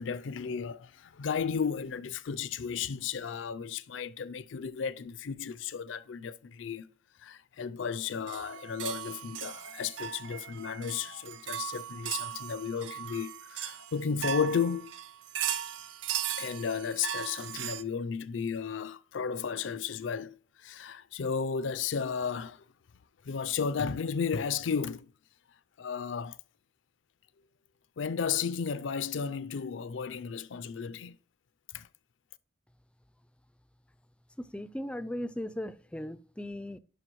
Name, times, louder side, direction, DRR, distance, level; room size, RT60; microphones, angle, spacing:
voice 1, 0.0-6.9 7.2-14.9 16.4-20.4 20.6-22.6 23.3-25.1 25.8-26.4 28.0-31.2 31.7-31.9, left 6 dB, 80° left, 0.4 m, -34 dB
sound 1, 8.3-17.8, right 10 dB, 75° right, 0.5 m, -38 dB
voice 2, 34.4-36.8, left 1 dB, 5° left, 0.3 m, -37 dB
11.5 x 5.0 x 3.0 m
head